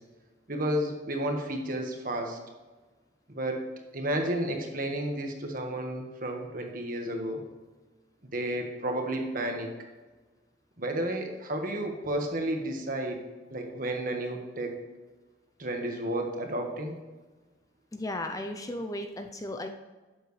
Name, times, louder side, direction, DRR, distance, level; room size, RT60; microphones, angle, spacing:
voice 1, 0.5-2.4 3.3-3.6 3.9-7.4 8.3-9.7 10.8-13.2 13.5-14.8 15.6-17.0, right 1 dB, 45° right, 3 dB, 1.5 m, -32 dB
voice 2, 17.9-19.7, left 1 dB, 20° left, 6 dB, 0.5 m, -35 dB
11.5 x 7.9 x 3.2 m, 1.2 s
head